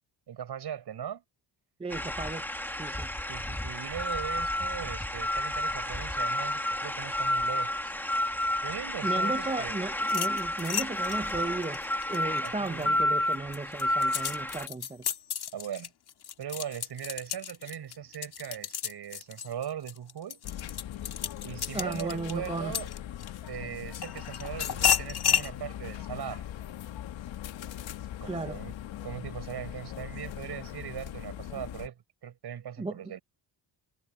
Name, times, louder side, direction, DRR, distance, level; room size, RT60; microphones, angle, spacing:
voice 1, 0.3-1.2 3.3-7.9 8.6-9.8 12.4-13.0 15.5-15.9 16.4-20.4 21.4-22.9 23.5-26.5 28.2-28.7 29.0-33.2, right 9 dB, 60° right, 6.4 m, -39 dB
voice 2, 1.8-3.1 9.0-11.8 12.1-15.1 21.7-22.8 28.2-28.6 32.8-33.0, right 3 dB, 15° right, 0.7 m, -35 dB
sound 1, 1.9-14.7, left 1 dB, 5° left, 2.0 m, -31 dB
sound 2, 10.0-12.9 13.3-23.5 24.0-25.5, left 9 dB, 55° left, 1.7 m, -32 dB
sound 3, 20.4-31.9, left 11 dB, 75° left, 1.4 m, -40 dB
wide cardioid pair, 160°, 46 cm